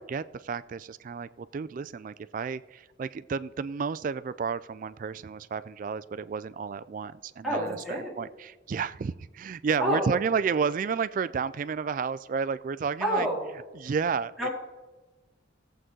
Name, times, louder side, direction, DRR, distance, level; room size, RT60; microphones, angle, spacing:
voice 1, 0.1-13.3 13.7-14.3, right 5 dB, 45° right, 17 dB, 0.3 m, -31 dB
voice 2, 7.4-8.1 9.8-10.1 13.0-13.5 14.4-14.5, equal, ahead, -5 dB, 2.7 m, -28 dB
17.5 x 7.8 x 3.8 m, 1.2 s
head